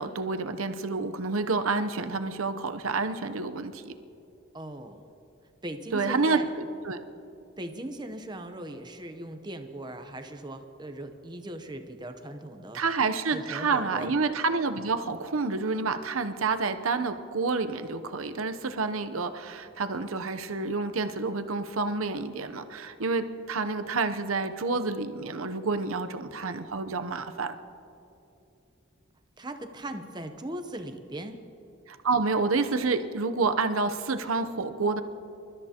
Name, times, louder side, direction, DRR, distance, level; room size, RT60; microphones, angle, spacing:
voice 1, 0.0-3.9 5.9-7.0 12.7-27.5 31.9-35.0, right 4 dB, 90° right, 8 dB, 0.8 m, -29 dB
voice 2, 4.5-5.0 5.6-6.5 7.6-12.8 13.3-14.1 29.4-31.4, right 1 dB, 20° right, 6 dB, 0.8 m, -39 dB
27.5 x 13.5 x 2.9 m, 2.8 s
head